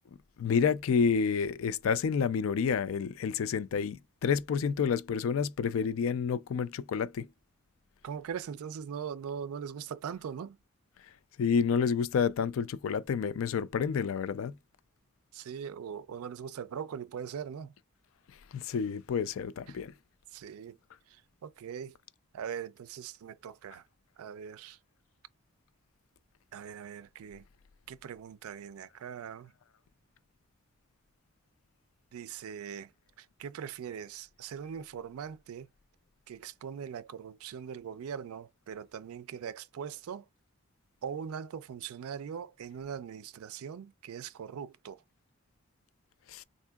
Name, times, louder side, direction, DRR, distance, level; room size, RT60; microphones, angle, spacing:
voice 1, 0.4-7.3 11.4-14.6 18.5-19.9 46.3-46.4, left 6 dB, 70° left, 0.3 m, -29 dB
voice 2, 8.0-10.6 15.3-17.7 19.7-19.8 20.3-20.8 21.4-22.0 22.3-23.8 24.2-24.8 26.5-27.4 27.9-29.5 32.1-32.9 33.2-35.7 36.3-40.3 41.0-45.0, right 7 dB, 90° right, 0.4 m, -41 dB
3.6 x 2.6 x 2.2 m
head